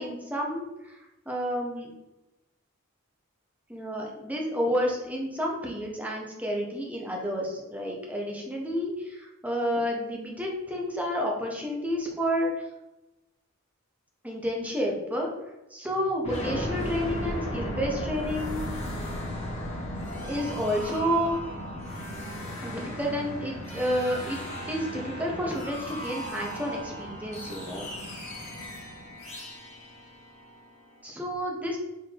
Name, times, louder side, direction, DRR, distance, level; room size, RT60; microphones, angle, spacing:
voice 1, 0.0-1.9 3.7-12.7 14.2-15.3 15.7-18.7 20.2-21.3 22.6-24.4 24.7-28.2 31.0-31.8, equal, 10° right, -1 dB, 0.7 m, -30 dB
sound 1, 16.2-30.9, equal, 35° left, 1.1 m, -36 dB
4.2 x 2.6 x 3.3 m, 0.99 s
head